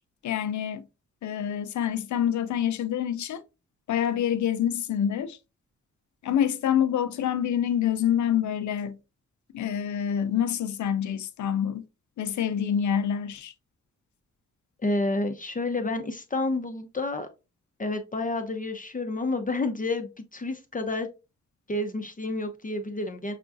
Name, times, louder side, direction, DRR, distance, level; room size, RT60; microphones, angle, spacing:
voice 1, 0.2-0.9 1.2-3.4 3.9-5.4 6.2-9.0 9.5-11.8 12.2-13.5, left 9 dB, 70° left, 0.5 m, -26 dB
voice 2, 14.8-17.3 17.8-21.1 21.7-23.3, left 2 dB, 25° left, 0.7 m, -29 dB
5.8 x 2.3 x 2.6 m
cardioid pair, 55°, 30 cm